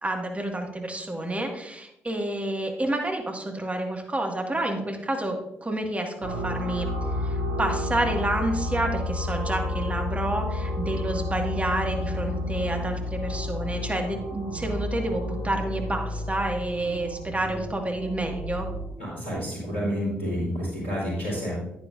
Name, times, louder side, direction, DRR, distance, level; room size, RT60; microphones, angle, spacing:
voice 1, 0.0-6.9 7.2-18.7, right 1 dB, 20° right, 3 dB, 1.8 m, -29 dB
sound 1, 6.2-18.9, left 1 dB, 90° right, 1.2 m, -31 dB
voice 2, 19.0-21.5, equal, 90° left, -8 dB, 3.4 m, -29 dB
10.0 x 9.6 x 2.6 m, 0.83 s
figure-of-eight pair, 40°, 6 cm